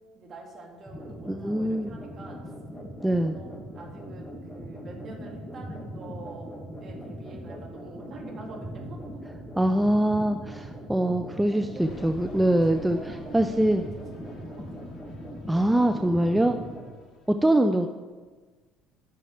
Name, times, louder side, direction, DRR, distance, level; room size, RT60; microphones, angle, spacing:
voice 1, 0.1-2.4 3.0-6.5 6.8-9.3 11.5-12.0 12.7-14.9 16.4-16.7 17.6-17.8, right 3 dB, 45° right, 1 dB, 2.2 m, -45 dB
sound 1, 0.9-16.8, equal, 5° left, 2.2 m, -40 dB
voice 2, 1.3-1.9 3.0-3.3 9.6-13.0 13.3-13.8 15.5-16.6 17.3-17.9, right 1 dB, 10° right, 7 dB, 0.5 m, -23 dB
sound 2, 11.8-17.3, left 3 dB, 50° left, 1.7 m, -49 dB
11.0 x 6.1 x 4.5 m, 1.4 s
hypercardioid pair, 60°, 0 cm